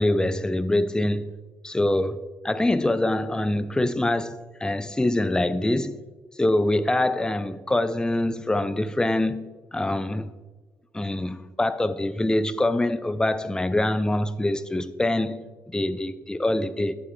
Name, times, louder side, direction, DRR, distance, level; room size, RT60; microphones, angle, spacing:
voice 1, 0.0-1.3 1.6-6.0 6.4-10.3 10.9-16.9, left 1 dB, 10° left, 0.5 m, -24 dB
12.0 x 7.3 x 2.5 m
figure-of-eight pair, 45°, 8 cm